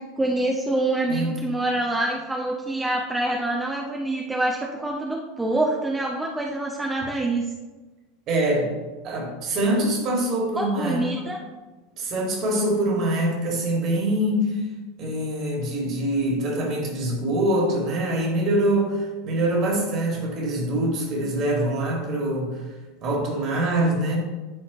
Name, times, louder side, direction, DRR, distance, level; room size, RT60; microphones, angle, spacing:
voice 1, 0.0-7.4 10.6-11.4, right 2 dB, 10° right, 0 dB, 0.7 m, -26 dB
voice 2, 1.1-1.4 8.3-8.8 9.0-11.1 12.0-14.7 15.0-22.6 23.0-24.2, right 1 dB, 45° right, 0 dB, 2.2 m, -24 dB
11.5 x 4.2 x 3.1 m, 1.2 s
figure-of-eight pair, 80°, 0 cm